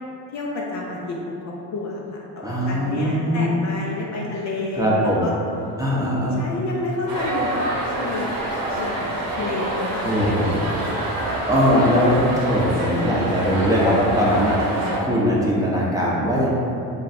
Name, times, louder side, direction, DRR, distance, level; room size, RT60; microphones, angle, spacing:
voice 1, 0.3-5.3 6.4-7.7 7.9-8.3 8.8-11.6, left 3 dB, 45° left, -2 dB, 0.5 m, -30 dB
voice 2, 2.4-3.6 4.8-5.3 5.8-6.4 10.0-10.7 11.5-12.1 12.4-14.6 15.0-16.5, equal, 10° right, -6 dB, 0.7 m, -20 dB
sound 1, 7.1-15.0, right 2 dB, 55° right, 0.9 m, -26 dB
3.1 x 2.4 x 4.1 m, 2.8 s
supercardioid pair, 80°, 40 cm